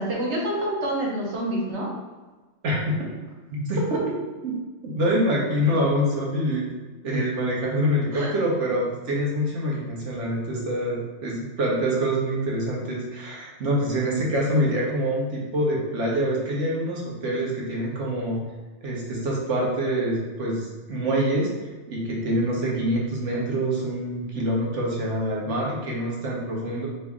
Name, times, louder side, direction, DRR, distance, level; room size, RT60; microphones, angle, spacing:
voice 1, 0.0-1.9 8.1-8.3, right 1 dB, 70° right, -3 dB, 1.3 m, -27 dB
voice 2, 2.6-3.0 3.5-3.8 4.4-4.6 4.8-6.7 7.0-18.4 18.8-21.5 21.9-26.9, equal, 90° right, -3 dB, 1.4 m, -25 dB
4.4 x 2.7 x 3.5 m, 1.3 s
omnidirectional pair, 1.2 m